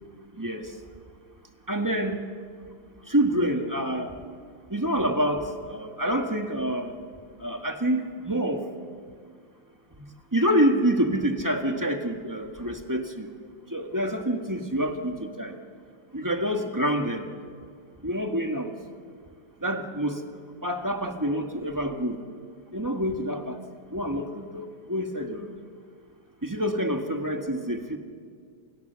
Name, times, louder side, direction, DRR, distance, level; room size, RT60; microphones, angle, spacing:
voice 1, 0.3-0.8 1.7-2.2 3.1-4.2 4.7-6.9 7.4-8.7 9.9-13.3 13.7-15.6 16.1-17.3 18.0-18.7 19.6-20.3 20.6-22.2 22.7-23.6 23.9-25.6 26.4-28.0, equal, 10° right, 4 dB, 1.6 m, -27 dB
29.0 x 28.0 x 7.0 m, 2.1 s
omnidirectional pair, 2.1 m